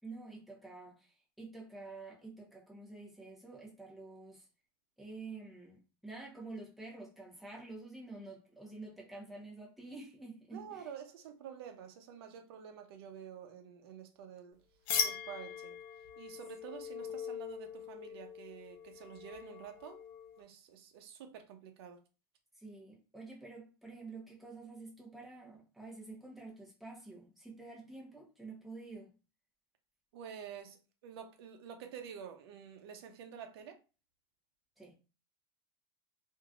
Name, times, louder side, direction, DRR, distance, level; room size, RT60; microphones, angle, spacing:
voice 1, 0.0-4.5 5.0-10.9 22.6-29.1 34.8-34.9, right 3 dB, ahead, 1.0 m, -49 dB
voice 2, 10.5-14.6 15.0-15.8 16.2-20.0 20.4-22.0 30.1-33.8, right 8 dB, 75° right, 0.7 m, -49 dB
sound 1, 14.9-20.4, left 7 dB, 60° left, 0.7 m, -40 dB
3.0 x 2.6 x 2.4 m
supercardioid pair, 140°, 13 cm